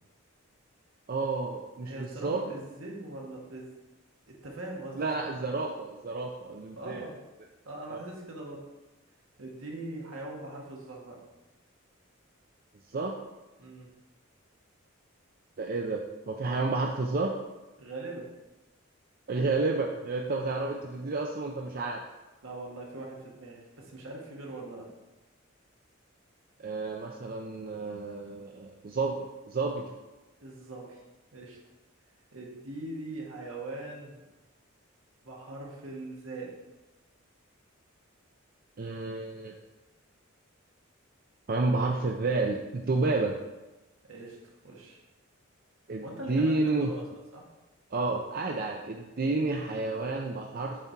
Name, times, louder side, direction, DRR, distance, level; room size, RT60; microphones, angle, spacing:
voice 1, 1.1-2.4 5.0-7.1 7.9-8.0 12.9-13.1 15.6-17.3 19.3-22.0 26.6-29.9 38.8-39.6 41.5-43.4 45.9-46.9 47.9-50.8, right 3 dB, 45° right, 1 dB, 0.5 m, -30 dB
voice 2, 1.8-3.7 4.3-5.0 6.7-7.2 7.6-8.7 9.4-11.2 13.6-13.9 17.8-18.3 22.4-24.9 30.4-31.0 31.3-31.6 32.3-34.2 35.2-36.6 44.1-45.0 46.0-46.6 46.9-47.0 47.3-47.5, right 2 dB, 75° right, -2 dB, 1.7 m, -41 dB
7.4 x 4.3 x 4.6 m, 1.1 s
head